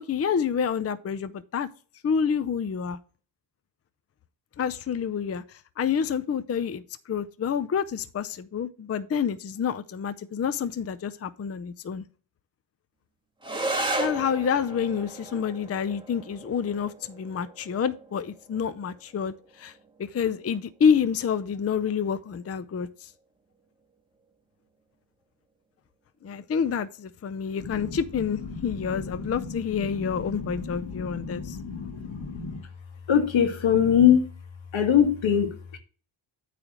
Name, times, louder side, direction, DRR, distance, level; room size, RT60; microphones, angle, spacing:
voice 1, 0.0-1.7 2.0-3.0 4.6-12.1 14.0-19.7 20.0-23.1 26.2-31.6, left 7 dB, 30° left, 0.5 m, -28 dB
sound 1, 13.4-22.4, right 2 dB, 10° right, 1.8 m, -36 dB
voice 2, 27.7-28.0 28.5-32.6 33.1-34.3 34.7-35.8, left 8 dB, 75° left, 1.7 m, -25 dB
8.8 x 3.3 x 6.2 m
cardioid pair, 70°, 47 cm